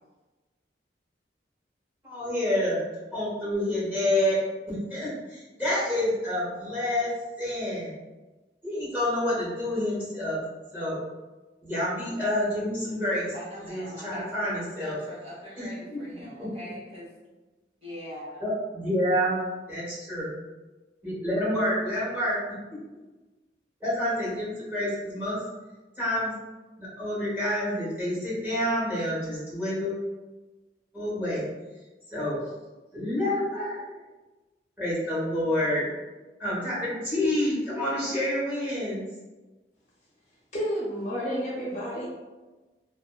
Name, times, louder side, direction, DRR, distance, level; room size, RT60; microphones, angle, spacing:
voice 1, 2.0-2.8 3.1-4.4 4.7-7.1 7.4-7.9 8.6-10.4 10.7-11.0 11.6-13.3 13.7-15.0 15.6-16.0 16.4-16.5 18.4-20.4 21.0-22.4 23.8-25.4 26.0-26.3 26.8-30.0 30.9-31.4 32.1-32.4 32.9-33.8 34.8-35.9 36.4-39.0, left 1 dB, 10° right, -9 dB, 1.1 m, -28 dB
voice 2, 13.3-17.1 17.8-18.4, equal, 35° right, -8 dB, 1.0 m, -42 dB
voice 3, 40.5-42.1, equal, 40° left, -5 dB, 0.6 m, -30 dB
2.5 x 2.3 x 2.3 m, 1.2 s
head